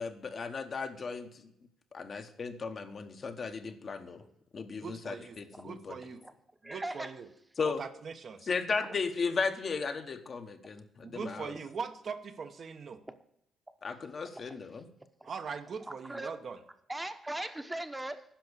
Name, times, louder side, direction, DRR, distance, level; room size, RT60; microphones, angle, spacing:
voice 1, 0.0-1.4 1.9-4.2 4.5-5.9 7.6-7.8 8.5-11.5 13.8-14.9, left 5 dB, 45° left, 7 dB, 1.1 m, -35 dB
voice 2, 4.7-5.4 5.6-6.2 6.6-7.3 7.6-8.5 11.0-13.0 15.2-16.6, right 5 dB, 50° right, 7 dB, 0.9 m, -41 dB
voice 3, 6.6-7.1 8.8-9.0 13.1-13.2 14.3-14.6 15.2-15.3 15.8-16.3 16.9-18.2, right 1 dB, 10° right, 10 dB, 1.0 m, -39 dB
10.5 x 5.9 x 8.1 m, 0.76 s
cardioid pair, 90°, 0 cm